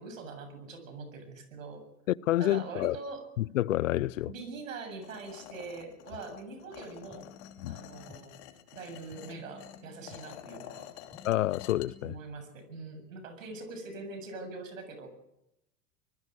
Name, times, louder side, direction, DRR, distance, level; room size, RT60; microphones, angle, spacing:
voice 1, 0.0-1.8 2.4-3.2 4.3-7.3 7.7-8.4 8.7-10.9 12.0-15.1, right 3 dB, 80° right, 7.9 m, -43 dB
voice 2, 2.1-3.0 3.4-4.3 7.6-7.8 11.2-12.2, left 14 dB, 75° left, 0.7 m, -28 dB
sound 1, 5.0-11.9, left 13 dB, 55° left, 2.9 m, -49 dB
sound 2, 7.1-8.2 9.1-10.2 11.1-12.2, left 5 dB, 5° left, 3.4 m, -53 dB
25.5 x 21.0 x 6.4 m
hypercardioid pair, 95°, 39 cm